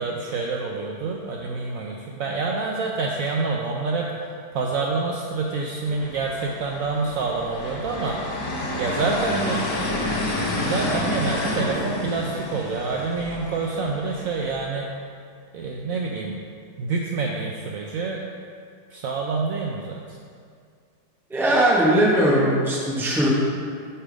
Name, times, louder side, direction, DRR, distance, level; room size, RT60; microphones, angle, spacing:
voice 1, 0.0-4.1 4.5-8.2 8.8-9.7 10.6-14.9 15.5-16.4 16.8-18.2 18.9-20.2, right 4 dB, 70° right, 0 dB, 0.8 m, -27 dB
sound 1, 5.9-14.6, left 2 dB, 80° left, 1.7 m, -29 dB
voice 2, 21.3-23.3, right 1 dB, ahead, -5 dB, 0.7 m, -19 dB
7.2 x 3.5 x 5.0 m, 2.2 s
omnidirectional pair, 1.8 m